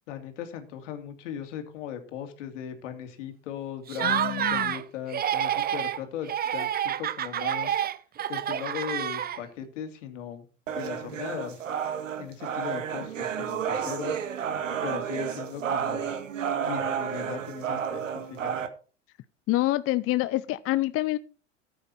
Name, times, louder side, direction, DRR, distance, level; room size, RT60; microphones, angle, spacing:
voice 1, 0.1-7.8 8.3-10.4 10.7-11.6 12.2-14.2 14.8-16.1 16.6-18.5, left 9 dB, 70° left, 6 dB, 2.8 m, -38 dB
Laughter, 3.9-4.8 5.1-6.0 6.3-9.6, right 10 dB, 25° right, 0.7 m, -28 dB
voice 2, 4.0-4.7 19.5-21.2, left 16 dB, 35° left, 15 dB, 0.6 m, -27 dB
sound 1, 10.7-18.7, right 8 dB, 85° right, 1.7 m, -31 dB
14.0 x 8.7 x 4.3 m, 0.37 s
hypercardioid pair, 90°, 37 cm